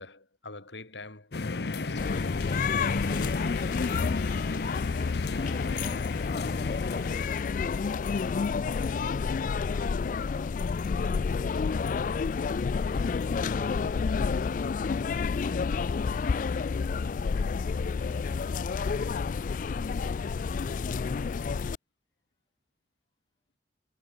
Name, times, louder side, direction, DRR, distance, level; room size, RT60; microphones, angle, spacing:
voice 1, 0.0-1.4 1.7-2.4 3.2-4.5, left 3 dB, 80° left, 3.5 m, -46 dB
sound 1, 1.3-7.3, left 3 dB, 60° left, 0.8 m, -33 dB
sound 2, 2.0-21.7, left 5 dB, 45° left, 0.3 m, -30 dB
voice 2, 5.4-7.2 8.2-9.0 9.7-11.9, left 1 dB, 25° left, 5.3 m, -52 dB
head